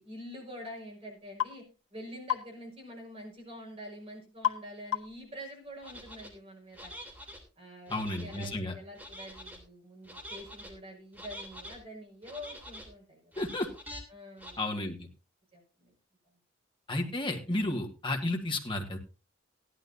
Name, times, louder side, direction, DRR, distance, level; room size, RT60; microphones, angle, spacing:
voice 1, 0.0-1.6 1.9-6.9 7.6-13.4 14.1-14.7 15.5-15.9, equal, 30° right, -1 dB, 5.3 m, -46 dB
sound 1, 1.4-1.6 2.3-2.5 4.4-4.7 4.9-5.2, left 11 dB, 80° left, 1.5 m, -30 dB
sound 2, 5.8-6.3 6.7-7.4 7.9-8.5 9.0-9.6 10.0-10.7 11.1-11.8 12.2-12.9 13.3-14.0 14.4-14.5, equal, 10° right, 3.2 m, -46 dB
voice 2, 7.9-8.7 13.4-13.7 14.6-15.1 16.9-19.0, left 1 dB, 25° left, 3 dB, 1.8 m, -32 dB
16.5 x 12.0 x 2.7 m, 0.31 s
head